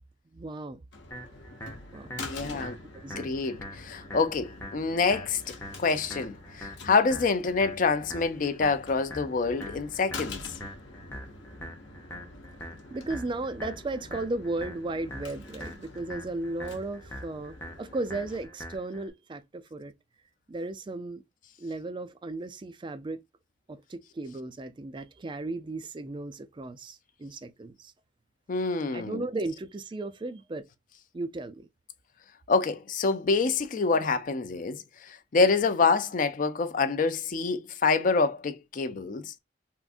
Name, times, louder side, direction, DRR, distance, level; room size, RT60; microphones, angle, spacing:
voice 1, 0.3-0.8 1.9-2.1 2.4-2.7 3.0-3.3 12.9-19.9 20.5-21.2 21.6-23.2 23.7-27.9 28.9-30.7 31.1-31.7, right 2 dB, 25° right, 0.4 m, -35 dB
sound 1, 0.9-18.5, left 3 dB, 70° left, 0.8 m, -46 dB
sound 2, 1.1-19.1, equal, 15° left, 0.8 m, -44 dB
voice 2, 2.2-2.8 3.2-10.4 28.5-29.2 32.5-34.8 35.1-39.3, left 4 dB, 45° left, 0.4 m, -26 dB
3.6 x 2.5 x 2.4 m
head